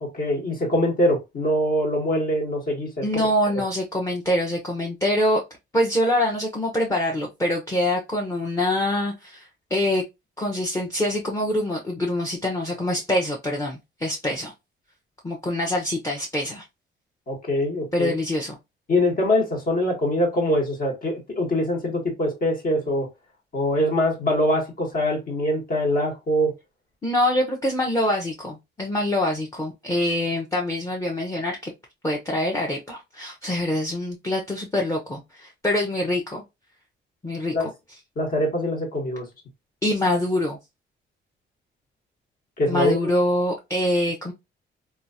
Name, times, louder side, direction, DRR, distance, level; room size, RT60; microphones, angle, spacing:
voice 1, 0.0-3.3 3.5-3.6 17.3-18.1 18.9-23.1 23.5-26.5 37.5-37.7 38.2-39.3 42.6-43.1, left 1 dB, 45° left, 1.3 m, -23 dB
voice 2, 3.0-5.4 5.7-10.0 10.4-14.5 15.2-16.6 17.9-18.6 27.0-31.7 32.0-36.4 37.2-37.7 39.8-40.6 42.7-44.3, left 1 dB, 15° left, 0.7 m, -25 dB
2.9 x 2.3 x 2.6 m
cardioid pair, 90°, 20 cm